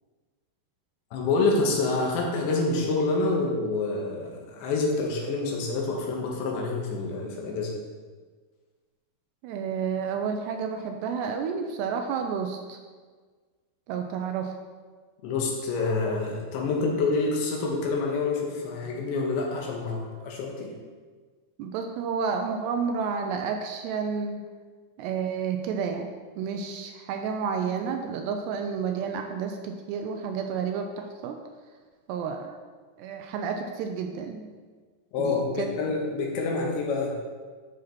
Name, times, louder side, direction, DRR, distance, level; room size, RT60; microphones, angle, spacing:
voice 1, 1.1-7.7 15.2-20.7 35.1-37.2, left 3 dB, 75° left, -1 dB, 3.7 m, -27 dB
voice 2, 9.4-12.8 13.9-14.6 21.6-24.4 25.0-26.1 26.4-31.4 32.1-32.6 33.0-34.5 35.2-35.7, right 6 dB, 80° right, 4 dB, 2.6 m, -30 dB
11.5 x 6.6 x 4.3 m, 1.5 s
omnidirectional pair, 5.4 m